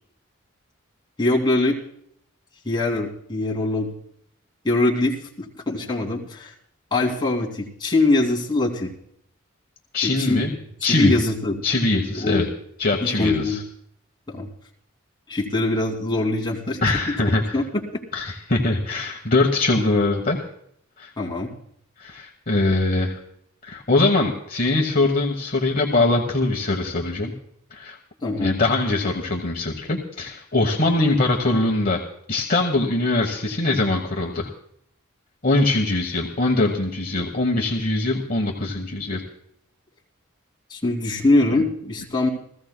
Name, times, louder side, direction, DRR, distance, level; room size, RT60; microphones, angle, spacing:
voice 1, 1.2-1.8 2.6-3.9 4.6-6.5 6.9-8.9 10.0-10.5 10.8-11.6 12.1-12.4 13.0-13.6 14.3-14.5 15.3-16.8 17.5-17.7 21.2-21.5 28.2-28.6 40.7-42.3, left 2 dB, 20° left, -2 dB, 2.4 m, -22 dB
voice 2, 9.9-10.5 10.8-11.1 11.6-12.5 12.8-13.6 16.8-17.5 18.1-20.4 21.0-21.1 22.0-23.2 23.6-27.3 27.7-28.0 28.4-32.0 32.3-34.5 35.4-39.2, left 2 dB, 40° left, 2 dB, 1.1 m, -22 dB
29.5 x 15.0 x 2.2 m, 0.70 s
head